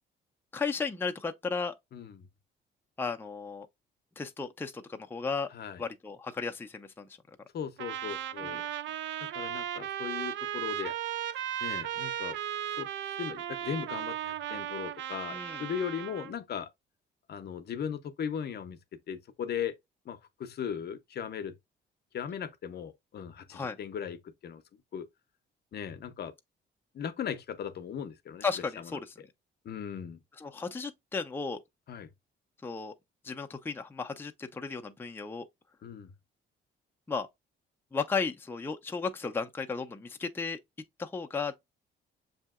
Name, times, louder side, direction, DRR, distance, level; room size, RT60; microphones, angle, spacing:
voice 1, 0.5-1.7 3.0-3.7 4.2-5.5 5.8-7.1 8.4-8.6 15.3-15.6 23.5-23.8 28.4-29.1 30.4-31.6 32.6-32.9 33.2-35.4 37.1-37.3 37.9-40.6 41.0-41.5, left 5 dB, 10° left, 0.5 m, -34 dB
voice 2, 1.9-2.3 5.5-5.8 7.5-8.6 9.3-11.0 11.6-12.4 12.8-16.7 17.3-18.8 19.1-19.8 20.1-21.6 22.1-24.6 24.9-25.1 25.7-26.3 26.9-28.4 29.6-30.2 31.9-32.1 35.8-36.1, left 8 dB, 55° left, 0.6 m, -38 dB
Trumpet, 7.8-16.3, right 11 dB, 70° right, 0.4 m, -36 dB
6.6 x 2.7 x 2.3 m
cardioid pair, 90°, 20 cm